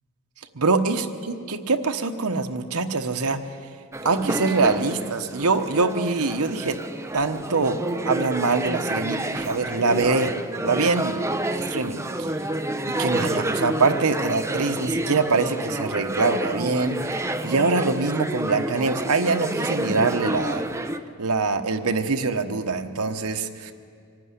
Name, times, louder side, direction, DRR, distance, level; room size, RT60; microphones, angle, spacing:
voice 1, 0.5-3.5 4.0-6.8 7.1-7.8 8.0-10.3 10.6-12.3 13.0-20.6 21.2-23.7, right 3 dB, 80° right, 7 dB, 1.1 m, -24 dB
sound 1, 3.9-21.0, right 1 dB, 15° right, 0.6 m, -29 dB
24.5 x 11.0 x 9.8 m, 2.3 s
head